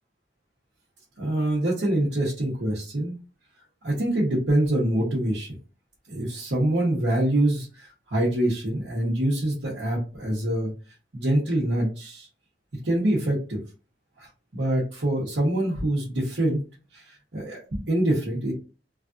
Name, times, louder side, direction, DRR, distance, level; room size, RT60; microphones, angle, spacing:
voice 1, 1.2-3.2 3.8-5.5 6.1-10.7 11.1-12.3 12.8-13.6 14.2-16.6 16.9-18.5, right 1 dB, 80° right, -6 dB, 1.0 m, -25 dB
3.2 x 2.5 x 2.5 m, 0.34 s
head